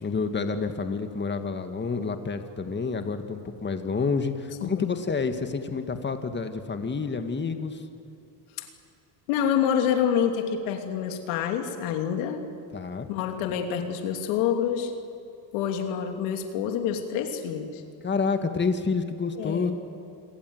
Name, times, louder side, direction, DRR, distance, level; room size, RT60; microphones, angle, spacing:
voice 1, 0.0-7.8 12.7-13.1 18.0-19.7, left 4 dB, 25° left, 7 dB, 2.0 m, -29 dB
voice 2, 4.6-5.0 8.6-8.7 9.3-12.4 13.1-14.9 15.5-17.8 19.4-19.7, left 8 dB, 90° left, 5 dB, 2.8 m, -27 dB
28.5 x 22.5 x 8.0 m, 2.7 s
cardioid pair, 100°, 45 cm